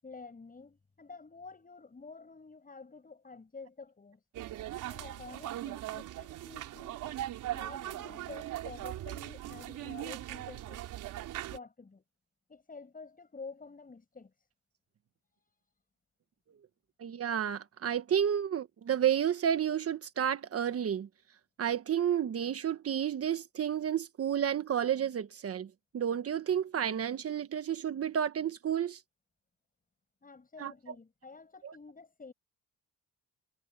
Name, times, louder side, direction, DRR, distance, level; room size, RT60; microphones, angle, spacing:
voice 1, 0.0-4.2 4.8-7.3 7.5-10.8 11.5-12.0 12.5-14.3 30.2-32.3, left 4 dB, 30° left, 7.2 m, -49 dB
sound 1, 4.3-11.6, right 13 dB, 85° right, 3.6 m, -40 dB
voice 2, 17.0-21.1 21.6-29.0 30.6-30.9 31.6-31.7, right 9 dB, 50° right, 1.3 m, -31 dB
cardioid pair, 90°, 30 cm